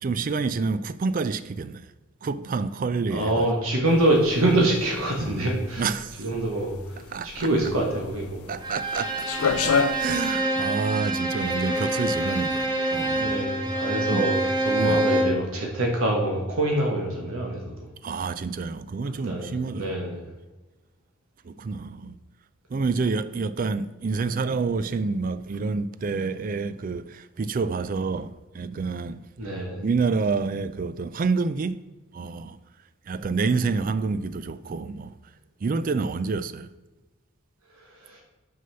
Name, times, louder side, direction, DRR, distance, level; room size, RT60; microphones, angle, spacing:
voice 1, 0.0-1.9 2.2-3.5 5.8-6.2 7.1-7.5 8.5-9.3 9.6-13.5 14.1-14.3 14.8-15.0 18.0-19.9 21.4-22.1 22.7-29.3 29.8-31.8 32.1-32.6 33.1-35.2 35.6-36.7, right 4 dB, 40° right, 0.3 m, -28 dB
voice 2, 3.1-5.9 6.2-6.7 7.2-8.4 13.2-14.4 14.6-17.9 19.1-20.2 29.4-29.8 38.1-38.2, right 1 dB, 80° right, 1.4 m, -25 dB
sound 1, 3.9-10.3, left 6 dB, 80° left, 0.4 m, -29 dB
Bowed string instrument, 8.6-15.5, right 1 dB, 20° right, 0.8 m, -26 dB
6.3 x 5.5 x 5.6 m
head